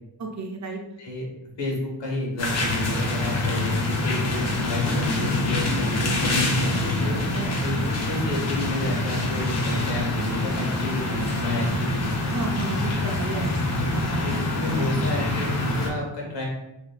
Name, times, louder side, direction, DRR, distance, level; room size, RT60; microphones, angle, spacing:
voice 1, 0.2-0.8 7.3-7.5 12.2-13.5 13.9-14.5, right 2 dB, 40° right, 2 dB, 0.5 m, -32 dB
voice 2, 1.6-12.5 14.2-16.5, left 1 dB, 70° left, -2 dB, 1.1 m, -31 dB
sound 1, 2.4-15.9, left 1 dB, 35° left, 0.5 m, -25 dB
3.4 x 2.9 x 2.3 m, 0.91 s
wide cardioid pair, 140°, 45 cm